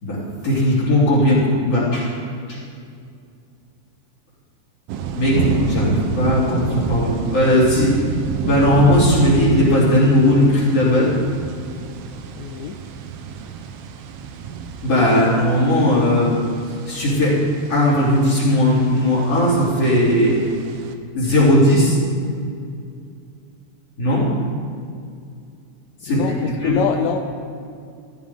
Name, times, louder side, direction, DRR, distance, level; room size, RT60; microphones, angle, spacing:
voice 1, 0.0-2.2 2.5-2.6 5.2-8.1 8.4-11.2 14.8-16.4 16.9-20.4 21.1-22.0 24.0-24.4 26.0-26.2 26.6-26.8, left 1 dB, 35° left, -8 dB, 3.9 m, -17 dB
sound 1, 4.9-20.9, right 6 dB, 85° right, 2.0 m, -29 dB
voice 2, 12.4-12.8 26.1-26.3 26.6-27.2, left 8 dB, 85° left, 3 dB, 2.9 m, -24 dB
17.0 x 13.5 x 3.6 m, 2.4 s
omnidirectional pair, 5.2 m